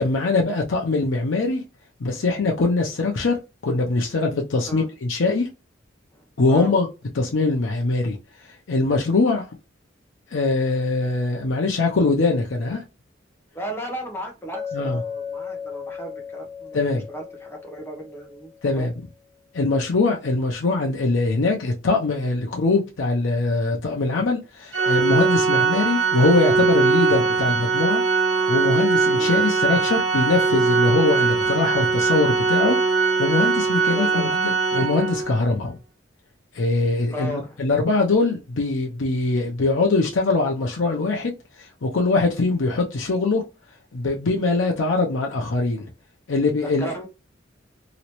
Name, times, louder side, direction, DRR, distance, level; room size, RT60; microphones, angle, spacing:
voice 1, 0.0-1.6 2.0-3.4 3.6-5.5 6.4-6.9 7.1-9.5 10.3-12.8 14.7-15.0 16.7-17.0 18.6-18.9 19.5-28.0 28.5-35.8 36.5-43.4 43.9-45.9 46.3-46.9, left 3 dB, 90° left, 0.6 m, -22 dB
voice 2, 6.1-6.7 13.5-18.5 18.8-18.9 29.2-29.3 33.9-34.3 37.1-37.6 46.8-47.1, equal, 15° left, 0.9 m, -35 dB
Chink clink, 14.5-18.7, left 6 dB, 15° right, 0.6 m, -36 dB
Organ, 24.7-35.4, right 4 dB, 75° right, 0.7 m, -21 dB
3.0 x 3.0 x 2.9 m
head